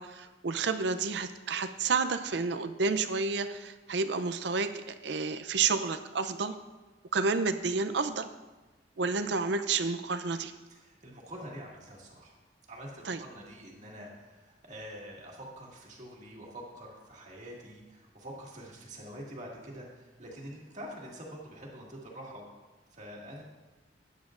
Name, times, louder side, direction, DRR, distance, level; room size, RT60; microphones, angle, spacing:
voice 1, 0.0-6.6 7.1-8.3 9.0-10.5 13.0-13.2, right 4 dB, 70° right, 10 dB, 0.6 m, -30 dB
voice 2, 10.7-12.3 12.7-22.5 22.9-23.4, equal, 40° right, -2 dB, 2.0 m, -46 dB
13.5 x 9.4 x 2.5 m, 1.2 s
head